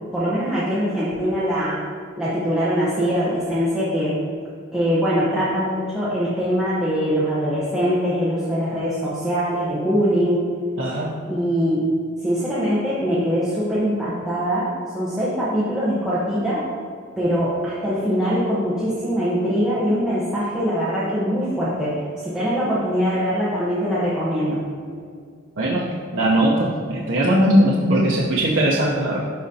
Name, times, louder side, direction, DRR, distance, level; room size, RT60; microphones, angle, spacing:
voice 1, 0.1-1.8 2.2-4.2 4.7-10.5 11.3-11.8 12.2-16.7 17.2-24.6 28.1-28.2, equal, 5° right, -11 dB, 1.0 m, -22 dB
voice 2, 10.8-11.1 25.6-29.2, right 1 dB, 70° right, -5 dB, 0.7 m, -19 dB
11.5 x 4.0 x 2.8 m, 2.1 s
head